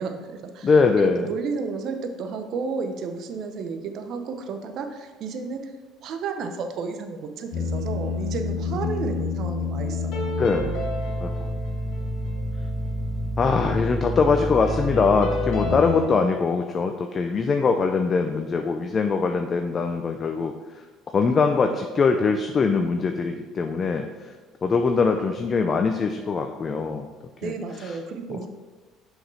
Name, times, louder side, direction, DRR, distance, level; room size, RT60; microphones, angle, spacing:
voice 1, 0.0-5.7 6.0-10.3 27.4-28.5, right 5 dB, 60° right, 6 dB, 0.9 m, -32 dB
voice 2, 0.6-1.3 8.8-9.1 10.4-10.7 11.2-11.3 13.4-20.5 21.1-24.3 24.6-27.1 27.4-27.5 27.8-28.0 28.3-28.5, left 4 dB, 35° left, 5 dB, 0.6 m, -22 dB
sound 1, 7.5-16.1, left 2 dB, 70° left, 1.7 m, -28 dB
6.2 x 5.0 x 5.5 m, 1.3 s
supercardioid pair, 80°, 0 cm